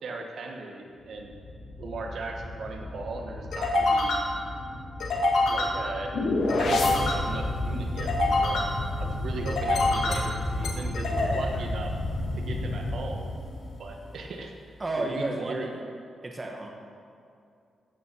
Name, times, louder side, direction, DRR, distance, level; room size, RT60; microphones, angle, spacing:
voice 1, 0.0-1.4 1.8-4.1 5.5-6.3 6.6-8.7 9.0-11.9 12.4-13.3 13.8-14.5 15.0-15.7, right 3 dB, 60° right, 2 dB, 1.3 m, -38 dB
sound 1, 1.2-13.9, left 2 dB, 75° left, 2.1 m, -27 dB
voice 2, 14.8-15.8 16.2-16.7, right 2 dB, 20° right, 1 dB, 1.2 m, -31 dB
16.0 x 7.1 x 6.1 m, 2.4 s
wide cardioid pair, 180°, 0 cm